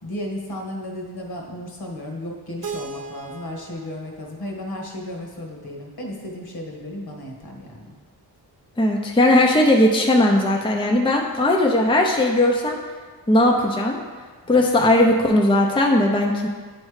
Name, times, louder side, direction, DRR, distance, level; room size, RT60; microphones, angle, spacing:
voice 1, 0.0-7.9 14.5-15.0, left 1 dB, 65° left, -1 dB, 1.4 m, -34 dB
Keyboard (musical), 2.6-5.5, right 4 dB, 50° right, 0.8 m, -38 dB
voice 2, 8.8-12.8 13.3-14.0 14.5-16.5, left 1 dB, 15° left, 0 dB, 0.6 m, -18 dB
9.2 x 3.3 x 4.8 m, 1.5 s
wide cardioid pair, 115°, 40 cm